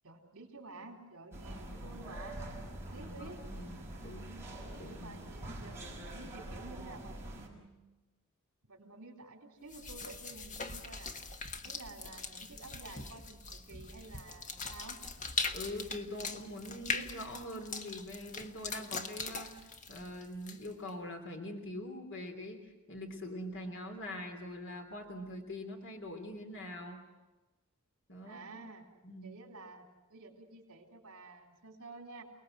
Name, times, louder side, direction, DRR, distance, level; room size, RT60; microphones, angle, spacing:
voice 1, 0.0-2.4 2.9-3.4 3.9-4.5 4.9-8.0 8.6-11.1 11.6-15.0 28.2-28.8 29.2-32.2, right 3 dB, 65° right, 3 dB, 4.1 m, -51 dB
sound 1, 1.3-7.5, right 1 dB, 10° right, 5.7 m, -45 dB
voice 2, 3.0-3.7 4.0-4.3 4.8-5.2 15.5-19.5 19.9-27.0 28.1-28.4 29.0-29.3, left 1 dB, 60° left, 4 dB, 3.3 m, -43 dB
sound 2, 9.7-20.9, left 4 dB, 35° left, 1.4 m, -41 dB
29.0 x 20.0 x 7.9 m, 1.1 s
head